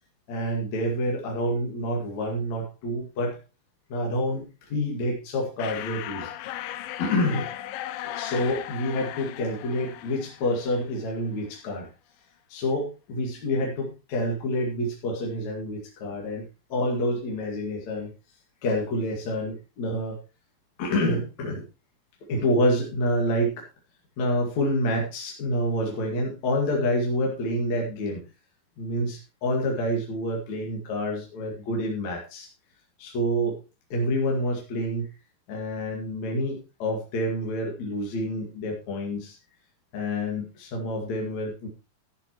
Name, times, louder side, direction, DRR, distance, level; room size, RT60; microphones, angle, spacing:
voice 1, 0.3-3.4 3.9-6.3 6.6-6.7 7.0-7.5 8.0-11.9 12.5-18.1 18.6-20.2 20.8-21.6 22.3-23.7 24.2-28.2 28.8-32.5 33.0-33.6 33.9-35.1 35.5-39.4 39.9-41.7, equal, 55° left, 0 dB, 3.3 m, -28 dB
sound 1, 5.6-11.1, left 13 dB, 80° left, 2.5 m, -37 dB
13.5 x 10.5 x 3.1 m, 0.29 s
omnidirectional pair, 4.2 m